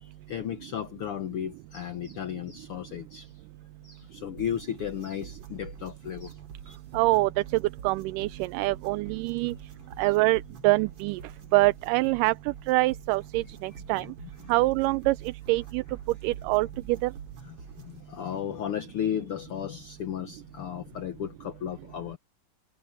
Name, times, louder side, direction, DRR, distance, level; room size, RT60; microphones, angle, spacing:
voice 1, 0.0-3.3 3.8-6.3 6.7-6.8 10.0-10.1 14.2-14.5 17.4-22.2, left 9 dB, 80° left, 1.2 m, -35 dB
sound 1, 4.4-18.0, right 4 dB, 45° right, 3.5 m, -48 dB
voice 2, 6.9-7.3 7.8-9.6 10.0-11.2 11.5-12.3 12.7-14.1 14.5-15.2 15.5-15.8 16.2-17.1, right 21 dB, 85° right, 2.1 m, -25 dB
omnidirectional pair, 3.8 m